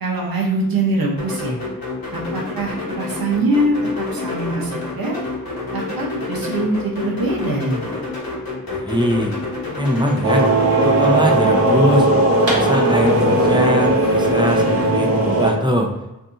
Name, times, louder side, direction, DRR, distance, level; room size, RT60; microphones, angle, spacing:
voice 1, 0.0-1.5 2.1-5.2 5.7-7.8, right 2 dB, 80° right, -3 dB, 0.9 m, -23 dB
sound 1, 1.2-14.9, left 3 dB, 90° left, 1.0 m, -28 dB
voice 2, 8.7-9.3 9.8-10.5 10.8-12.1 12.4-15.9, equal, 15° right, 1 dB, 0.6 m, -21 dB
sound 2, 10.2-15.5, right 2 dB, 45° right, 1.1 m, -17 dB
2.7 x 2.6 x 3.5 m, 0.95 s
wide cardioid pair, 55°, 35 cm